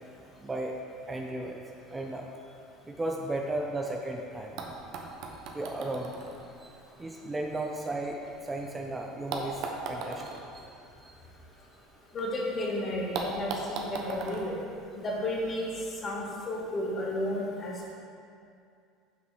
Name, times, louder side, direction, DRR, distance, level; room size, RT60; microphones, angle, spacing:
voice 1, 0.4-0.8 1.1-1.6 1.9-2.3 2.9-4.6 5.5-6.1 6.6-6.7 7.0-8.2 8.4-10.7 11.0-11.2, right 2 dB, 15° right, 1 dB, 0.7 m, -35 dB
sound 1, 4.6-8.7 9.3-12.3 12.5-12.6 13.1-15.5 16.5-16.6, right 4 dB, 50° right, 1.0 m, -40 dB
voice 2, 12.1-14.6 15.0-15.7 16.0-17.9, left 1 dB, 35° left, -3 dB, 1.8 m, -32 dB
8.4 x 6.0 x 4.7 m, 2.4 s
figure-of-eight pair, 65°, 0 cm